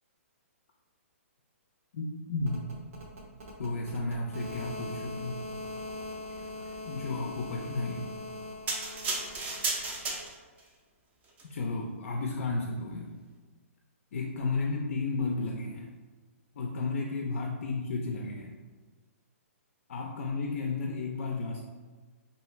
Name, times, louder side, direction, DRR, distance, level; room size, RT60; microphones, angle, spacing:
voice 1, 1.9-2.6 3.6-5.4 6.9-8.1 11.5-13.1 14.1-15.9 16.5-18.6 19.9-21.6, left 3 dB, 65° left, 0 dB, 0.4 m, -33 dB
sound 1, 2.4-10.3, left 1 dB, 65° right, 0.7 m, -42 dB
sound 2, 8.7-10.6 11.3-11.4, right 3 dB, 20° right, 0.4 m, -33 dB
2.6 x 2.3 x 3.0 m, 1.4 s
hypercardioid pair, 135°, 8 cm